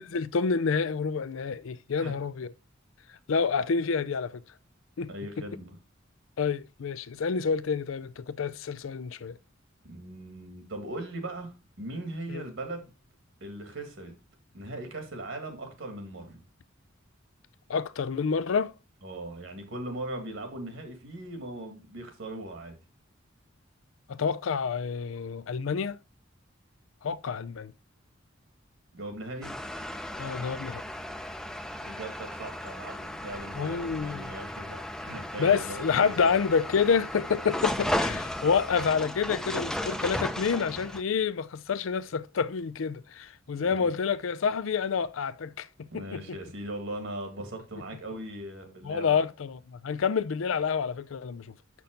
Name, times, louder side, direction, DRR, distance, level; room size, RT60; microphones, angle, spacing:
voice 1, 0.0-2.5 3.3-4.4 5.0-5.1 6.4-9.4 12.3-12.5 17.7-18.7 24.1-26.0 27.0-27.7 30.2-30.8 33.5-34.3 35.4-45.7 45.9-46.2 48.8-51.5, left 6 dB, 85° left, 0.5 m, -28 dB
voice 2, 5.1-5.7 9.9-12.9 13.4-14.1 14.5-16.4 19.0-22.8 28.9-29.5 31.8-36.3 37.4-37.9 43.6-43.9 45.9-49.2, right 1 dB, 70° right, 2.0 m, -39 dB
sound 1, 29.4-41.0, left 1 dB, 5° left, 0.5 m, -35 dB
7.0 x 6.0 x 3.7 m
head